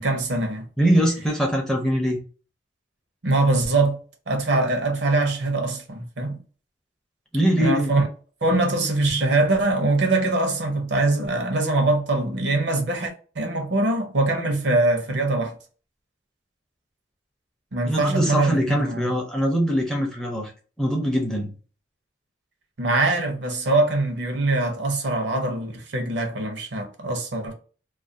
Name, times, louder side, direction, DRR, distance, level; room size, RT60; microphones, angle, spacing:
voice 1, 0.0-0.7 3.2-4.0 4.3-6.4 7.6-8.0 8.4-15.5 17.7-19.1 22.8-27.5, right 2 dB, 70° right, 0.7 m, -23 dB
voice 2, 0.8-2.2 7.3-7.9 17.8-20.5 20.8-21.5, equal, 5° left, 0.5 m, -22 dB
2.4 x 2.2 x 2.6 m
head